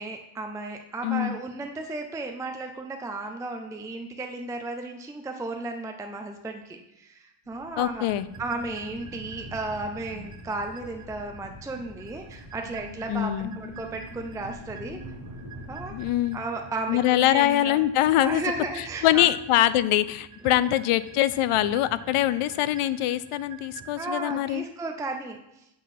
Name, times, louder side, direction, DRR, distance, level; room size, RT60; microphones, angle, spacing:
voice 1, 0.0-8.1 8.4-15.0 15.7-16.0 16.3-17.8 18.2-19.3 20.4-20.8 24.0-25.7, right 3 dB, 5° right, 4 dB, 0.4 m, -34 dB
voice 2, 1.0-1.4 7.8-8.3 13.1-13.5 15.9-16.4 16.9-18.4 19.0-24.6, left 13 dB, 90° left, 15 dB, 0.5 m, -23 dB
sound 1, 7.4-16.2, left 4 dB, 65° left, 1.2 m, -46 dB
sound 2, 8.1-23.9, right 4 dB, 35° right, 0.9 m, -46 dB
8.3 x 3.9 x 5.8 m, 0.88 s
wide cardioid pair, 155°, 50 cm